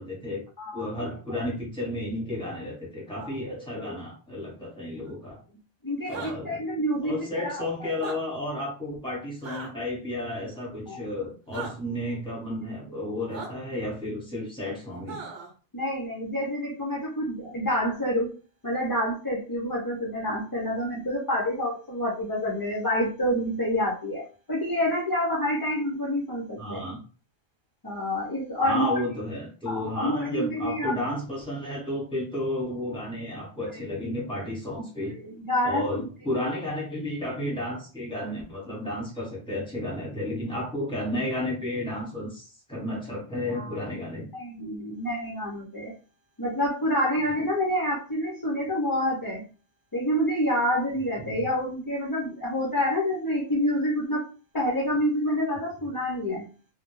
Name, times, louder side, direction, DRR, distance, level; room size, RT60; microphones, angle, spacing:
voice 1, 0.0-0.4 0.7-5.4 6.1-6.6 7.0-15.2 26.6-27.0 28.6-35.1 35.6-44.3 51.2-51.5, left 1 dB, 5° left, -4 dB, 0.9 m, -32 dB
voice 2, 3.5-4.0 5.8-7.6 10.9-11.0 12.9-13.0 15.7-18.3 18.6-26.8 27.8-29.0 29.7-31.0 33.7-34.1 35.1-36.1 43.5-43.8 44.3-45.9 46.4-49.5 49.9-54.2 54.5-56.5, equal, 35° left, -4 dB, 0.3 m, -28 dB
sound 1, 6.1-6.3 7.9-8.2 9.4-9.7 11.5-11.7 13.3-13.5 15.1-15.5, right 5 dB, 65° right, 1.0 m, -37 dB
2.2 x 2.1 x 3.0 m, 0.37 s
omnidirectional pair, 1.2 m